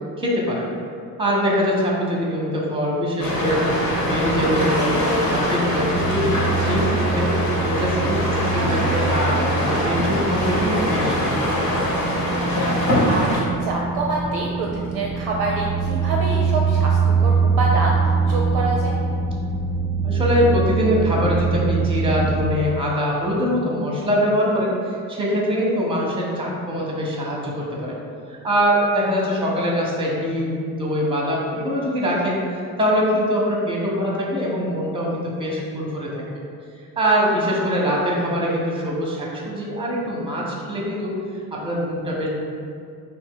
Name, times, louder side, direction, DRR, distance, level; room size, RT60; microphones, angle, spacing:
voice 1, 0.2-0.7 1.2-3.7 4.0-7.4 7.6-11.7 20.0-28.0 28.3-32.5 32.8-36.4 37.0-41.2 41.5-42.3, equal, 10° right, -3 dB, 0.7 m, -23 dB
sound 1, 3.2-13.4, left 1 dB, 35° left, 1.0 m, -23 dB
sound 2, 3.4-22.3, right 5 dB, 10° left, 0.3 m, -24 dB
voice 2, 8.6-9.0 12.9-19.0 37.2-37.3 37.6-37.7, right 2 dB, 50° right, -2 dB, 0.5 m, -26 dB
2.7 x 2.0 x 3.7 m, 2.4 s
figure-of-eight pair, 45°, 49 cm